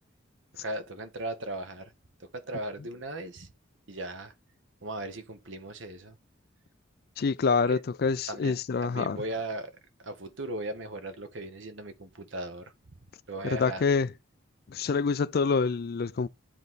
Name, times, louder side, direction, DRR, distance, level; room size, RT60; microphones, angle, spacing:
voice 1, 0.6-1.9 2.2-3.5 3.9-4.3 4.8-6.2 7.7-7.8 8.3-9.7 10.0-13.0 13.3-13.8, right 2 dB, 70° right, 1.2 m, -37 dB
voice 2, 7.2-9.2 13.5-14.1 14.7-16.3, left 4 dB, 50° left, 0.4 m, -26 dB
10.0 x 4.0 x 3.7 m
head